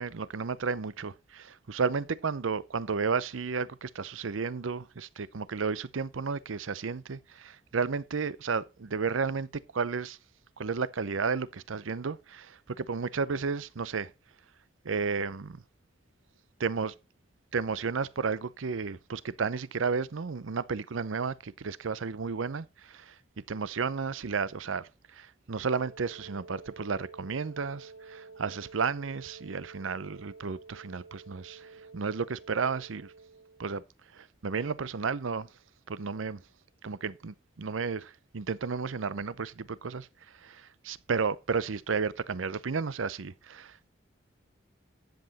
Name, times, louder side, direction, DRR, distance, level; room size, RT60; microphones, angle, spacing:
voice 1, 0.0-9.5 9.7-10.2 10.6-14.1 14.8-15.6 16.6-16.9 17.5-23.2 23.5-33.1 33.6-33.8 34.1-35.5 35.9-36.4 36.8-40.1 40.4-43.9, right 5 dB, 90° right, 0.6 m, -33 dB
Wind instrument woodwind instrument, 25.8-33.7, right 4 dB, 70° right, 1.6 m, -50 dB
10.5 x 7.8 x 4.1 m
head